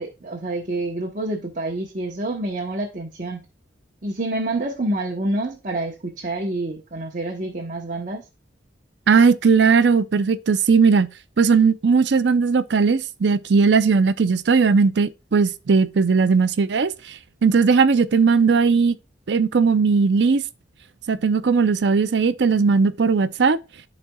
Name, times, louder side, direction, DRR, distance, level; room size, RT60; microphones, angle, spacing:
voice 1, 0.0-3.4 4.0-8.2, right 2 dB, 45° right, 1.0 m, -27 dB
voice 2, 9.1-11.1 11.4-18.9 19.3-20.4 21.1-23.6, right 5 dB, 70° right, 0.5 m, -18 dB
12.5 x 4.2 x 2.3 m
head